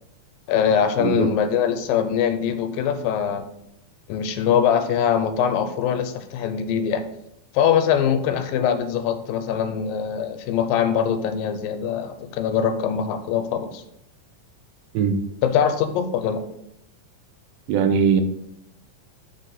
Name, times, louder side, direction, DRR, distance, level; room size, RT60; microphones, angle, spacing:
voice 1, 0.5-3.5 4.1-7.0 7.5-13.8 15.4-16.4, left 8 dB, 85° left, 9 dB, 2.5 m, -22 dB
voice 2, 1.0-1.3 14.9-15.2 17.7-18.2, right 6 dB, 90° right, 7 dB, 2.6 m, -20 dB
6.7 x 6.6 x 4.0 m, 0.77 s
omnidirectional pair, 4.0 m